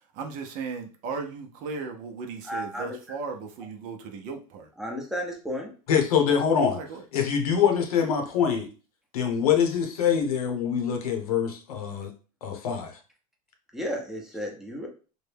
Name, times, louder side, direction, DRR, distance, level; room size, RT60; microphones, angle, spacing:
voice 1, 0.1-4.7 6.6-7.0, right 4 dB, 45° right, 4 dB, 0.7 m, -36 dB
voice 2, 2.5-3.0 4.8-5.7 13.7-14.9, equal, ahead, 0 dB, 0.8 m, -33 dB
voice 3, 5.9-6.8 7.1-8.7 9.1-12.1 12.4-13.0, left 7 dB, 90° left, 3 dB, 0.9 m, -24 dB
3.1 x 2.2 x 3.4 m, 0.36 s
supercardioid pair, 135°, 19 cm